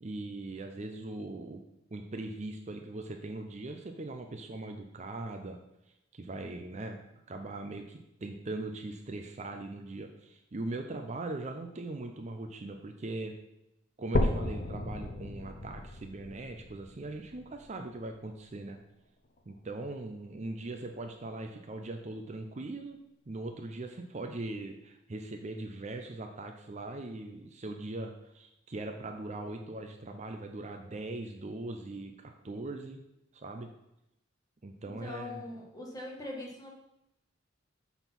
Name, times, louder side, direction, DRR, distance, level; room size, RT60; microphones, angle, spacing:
voice 1, 0.0-1.6 1.9-5.6 6.1-7.0 7.3-13.3 14.0-18.8 19.5-23.0 23.3-33.0 33.3-33.7 34.6-35.5, right 2 dB, 35° right, 5 dB, 0.5 m, -40 dB
sound 1, 14.1-18.1 18.7-18.8 19.4-19.5 19.8-19.9 20.7-20.8, left 1 dB, 45° left, 0.7 m, -34 dB
voice 2, 35.0-36.7, left 2 dB, 20° left, -2 dB, 1.4 m, -41 dB
7.0 x 4.0 x 5.8 m, 0.87 s
head